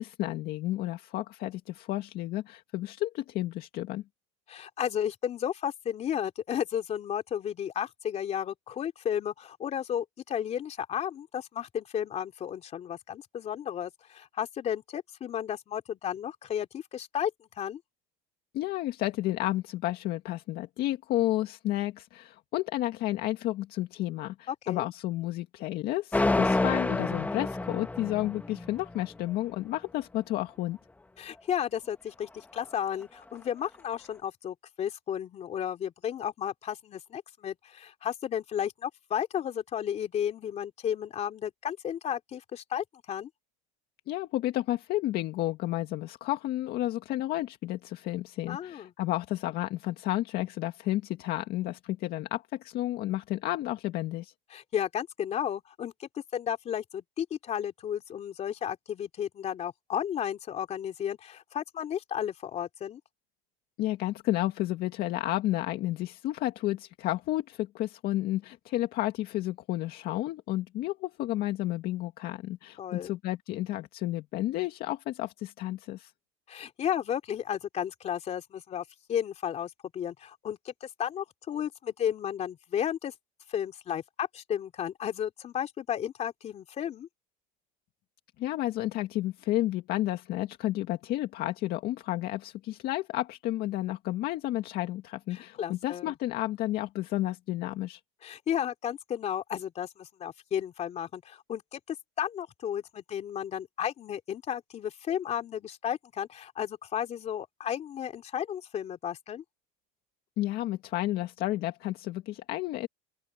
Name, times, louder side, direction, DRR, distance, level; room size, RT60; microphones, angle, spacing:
voice 1, 0.0-4.0 18.5-30.8 44.1-54.3 63.8-76.1 88.4-98.0 110.4-112.9, left 15 dB, 50° left, 2.0 m, -31 dB
voice 2, 4.5-17.3 17.6-17.8 24.5-24.9 31.2-43.3 48.5-48.9 54.5-63.0 72.8-73.1 76.5-83.1 83.5-87.1 95.3-96.1 98.2-109.4, left 9 dB, 35° left, 3.3 m, -33 dB
sound 1, 26.1-29.0, left 2 dB, 10° left, 1.7 m, -28 dB
open air
supercardioid pair, 135°, 20 cm